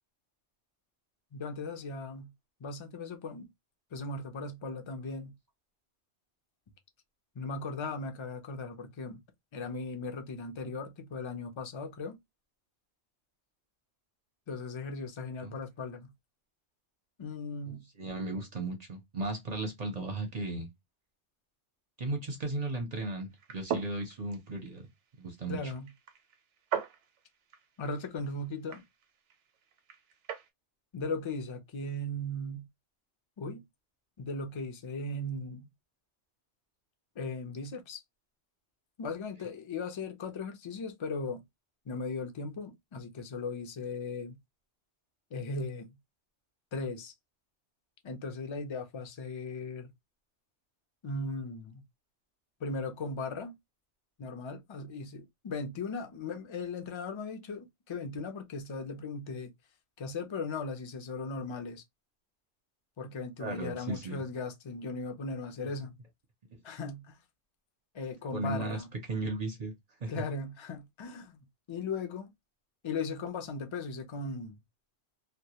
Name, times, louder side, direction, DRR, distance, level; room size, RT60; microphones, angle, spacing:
voice 1, 1.3-2.3 2.6-3.5 3.9-5.4 7.4-9.2 9.5-12.2 14.5-16.1 17.2-17.9 25.5-25.9 27.8-28.8 30.9-32.7 33.4-33.6 34.2-35.7 37.2-38.0 39.0-41.4 41.9-44.4 45.3-45.9 46.7-47.1 48.0-49.9 51.0-51.8 52.6-53.6 54.2-59.5 60.0-61.8 63.0-66.0 66.6-67.2 67.9-68.9 70.1-72.3 72.8-74.5, left 3 dB, 50° left, 0.3 m, -38 dB
voice 2, 18.0-20.7 22.0-24.9 25.2-25.7 63.4-64.2 66.5-66.6 68.3-69.7 70.0-70.1, right 2 dB, 45° right, 0.5 m, -36 dB
sound 1, 23.3-30.5, right 8 dB, 85° right, 0.9 m, -41 dB
2.2 x 2.1 x 2.8 m
omnidirectional pair, 1.2 m